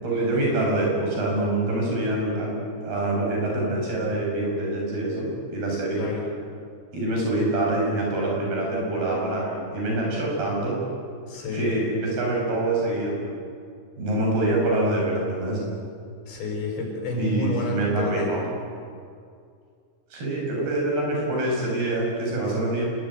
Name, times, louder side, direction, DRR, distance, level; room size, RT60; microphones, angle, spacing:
voice 1, 0.0-2.6 2.8-6.0 6.9-10.8 11.5-13.2 14.0-15.6 17.2-18.4 20.1-22.9, right 2 dB, 65° right, -2 dB, 9.5 m, -25 dB
voice 2, 6.0-6.3 11.3-11.8 16.3-18.3, left 2 dB, 85° left, 0 dB, 7.8 m, -29 dB
26.0 x 20.5 x 9.4 m, 2.3 s
omnidirectional pair, 4.9 m